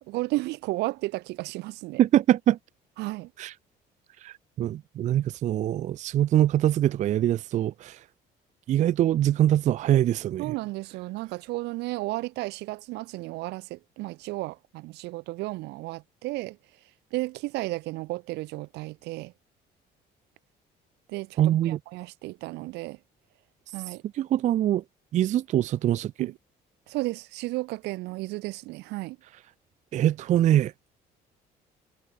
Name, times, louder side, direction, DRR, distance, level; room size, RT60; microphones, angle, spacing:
voice 1, 0.0-2.0 3.0-3.3 10.4-16.6 17.1-19.3 21.1-23.0 23.7-24.0 26.2-26.4 26.9-29.2, right 20 dB, 85° right, 0.9 m, -33 dB
voice 2, 2.0-2.6 3.4-3.5 4.2-8.0 8.7-10.5 21.4-21.8 24.2-24.8 25.1-26.1 29.9-30.7, right 12 dB, 45° right, 0.4 m, -23 dB
cardioid pair, 110°, 17 cm